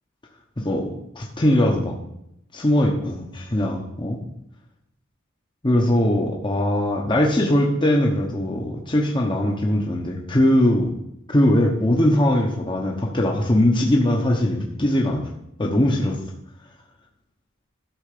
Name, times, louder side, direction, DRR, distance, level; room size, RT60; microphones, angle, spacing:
voice 1, 0.6-0.9 1.1-1.9 2.5-4.2 5.6-10.9 11.3-15.3 15.6-16.2, left 1 dB, 25° left, 0 dB, 1.1 m, -20 dB
12.5 x 4.5 x 6.8 m, 0.80 s
head